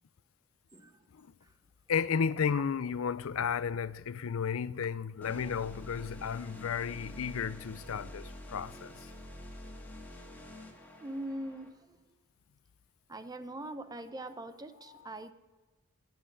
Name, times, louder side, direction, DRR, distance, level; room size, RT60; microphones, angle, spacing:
voice 1, 1.9-9.1 14.9-15.0, left 6 dB, 90° left, 0.5 m, -33 dB
sound 1, 5.2-11.7, left 1 dB, 10° left, 1.8 m, -47 dB
voice 2, 11.0-11.7 13.1-15.3, right 1 dB, 20° right, 0.7 m, -41 dB
13.5 x 9.6 x 5.4 m
head